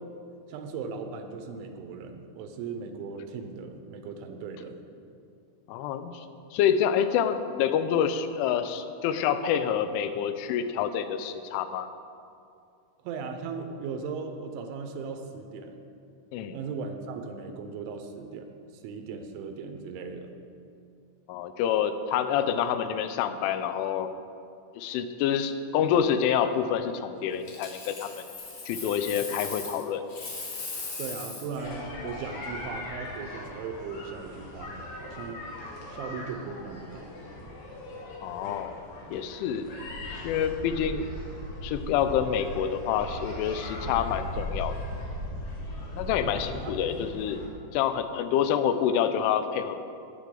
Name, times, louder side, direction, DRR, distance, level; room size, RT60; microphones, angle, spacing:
voice 1, 0.5-4.7 13.0-15.8 16.5-18.5 18.8-20.3 31.0-35.5 35.9-37.1 46.2-47.2, right 5 dB, 85° right, 6 dB, 3.2 m, -38 dB
voice 2, 5.7-6.3 6.5-11.9 16.3-16.6 21.3-24.1 24.8-28.1 28.7-30.0 38.2-38.8 39.1-39.7 40.2-41.1 41.6-44.8 46.0-47.4 47.7-49.8, left 8 dB, 90° left, 10 dB, 3.1 m, -27 dB
Coin (dropping), 27.5-29.8 30.1-31.6 34.4-34.6, left 3 dB, 45° left, 3.9 m, -38 dB
sound 1, 31.5-47.5, left 1 dB, 70° left, 4.4 m, -39 dB
18.5 x 8.0 x 3.9 m, 2.5 s
omnidirectional pair, 5.4 m